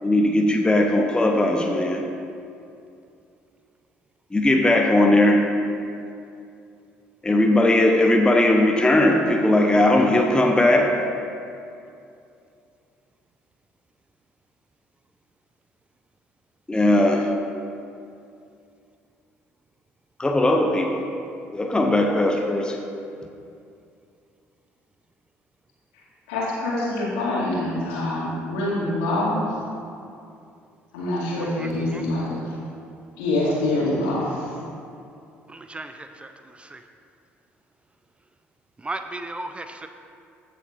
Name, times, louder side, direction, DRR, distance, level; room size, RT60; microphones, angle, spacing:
voice 1, 0.0-2.0 4.3-5.5 7.2-11.0 16.7-17.3 20.2-21.0 21.5-22.8, left 1 dB, 10° left, 2 dB, 0.7 m, -19 dB
voice 2, 26.3-29.4 30.9-32.6 33.2-34.5, left 1 dB, 65° left, -6 dB, 2.2 m, -25 dB
voice 3, 31.4-32.0 35.5-36.3 36.7-36.8 38.8-39.9, right 2 dB, 15° right, 7 dB, 0.4 m, -35 dB
14.5 x 6.8 x 2.5 m, 2.5 s
figure-of-eight pair, 55°, 7 cm